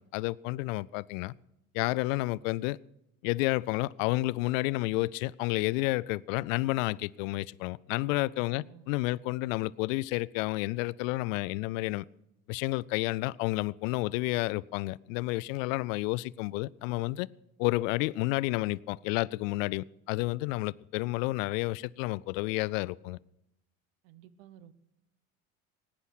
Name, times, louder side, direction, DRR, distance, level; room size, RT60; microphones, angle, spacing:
voice 1, 0.0-1.3 1.7-2.8 3.2-12.0 12.5-17.3 17.6-23.2, left 20 dB, 70° left, 0.5 m, -30 dB
voice 2, 8.5-8.9 24.0-24.7, right 10 dB, 65° right, 1.1 m, -54 dB
18.0 x 10.0 x 6.2 m
hypercardioid pair, 70°, 41 cm